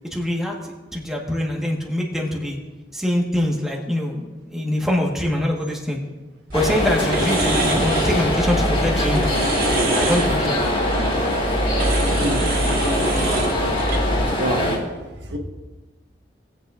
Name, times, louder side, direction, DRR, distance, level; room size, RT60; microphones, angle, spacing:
voice 1, 0.1-2.6 2.9-6.0 6.5-9.2 9.9-10.6, left 1 dB, ahead, -1 dB, 1.4 m, -24 dB
sound 1, 6.5-14.8, left 1 dB, 35° left, 2.9 m, -23 dB
sound 2, 6.5-14.2, right 1 dB, 55° right, 1.5 m, -25 dB
voice 2, 12.0-12.5 14.4-15.0 15.3-15.4, right 1 dB, 85° right, 2 dB, 1.3 m, -27 dB
20.0 x 8.1 x 2.5 m, 1.2 s
head